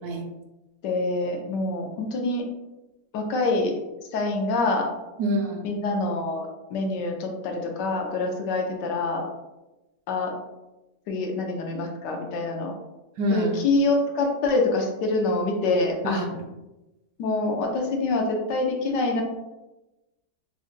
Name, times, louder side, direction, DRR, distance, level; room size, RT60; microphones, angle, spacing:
voice 1, 0.8-2.4 3.1-3.7 4.1-4.9 5.6-9.2 10.1-10.3 11.1-12.7 13.3-16.3 17.2-19.2, left 2 dB, 90° left, 2 dB, 1.3 m, -25 dB
voice 2, 5.2-5.7 13.2-13.5 16.0-16.3, equal, 75° right, 3 dB, 1.0 m, -26 dB
4.9 x 2.1 x 2.7 m, 1.0 s
omnidirectional pair, 1.8 m